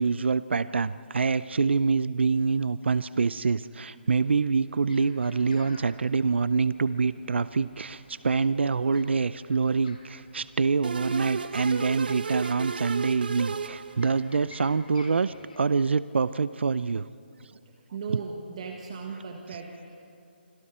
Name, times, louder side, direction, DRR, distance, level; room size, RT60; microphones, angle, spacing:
voice 1, 0.0-17.1, right 4 dB, 85° right, 15 dB, 0.5 m, -26 dB
sound 1, 4.0-15.6, left 3 dB, 50° left, 3.5 m, -54 dB
sound 2, 10.8-14.4, right 5 dB, 60° right, 1.2 m, -34 dB
voice 2, 17.9-20.0, right 5 dB, 35° right, 2 dB, 1.5 m, -37 dB
27.5 x 26.0 x 4.3 m, 2.6 s
hypercardioid pair, 175°, 6 cm